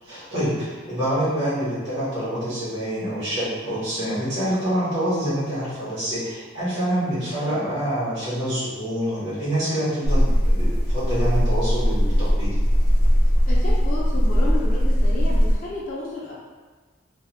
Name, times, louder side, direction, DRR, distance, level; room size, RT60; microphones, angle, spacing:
voice 1, 0.0-12.6, equal, 65° right, -11 dB, 1.4 m, -26 dB
sound 1, 10.0-15.6, equal, 25° right, 0.4 m, -19 dB
voice 2, 13.5-16.3, left 2 dB, 40° left, -7 dB, 0.4 m, -32 dB
2.7 x 2.1 x 3.1 m, 1.4 s
head